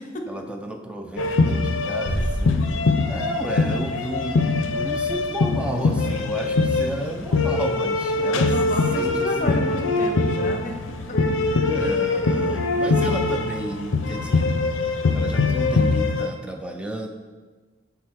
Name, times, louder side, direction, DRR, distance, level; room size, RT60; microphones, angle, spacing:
voice 1, 0.3-2.6 3.1-9.6 11.5-14.5 15.1-17.1, equal, 5° right, 3 dB, 0.4 m, -32 dB
sound 1, 1.2-16.3, left 3 dB, 80° left, 0.5 m, -23 dB
Bass drum, 2.0-3.5, equal, 60° right, 1.0 m, -28 dB
voice 2, 8.2-10.8 11.1-11.2 11.8-12.0, left 1 dB, 40° left, 4 dB, 0.7 m, -31 dB
6.4 x 3.6 x 4.5 m, 1.4 s
head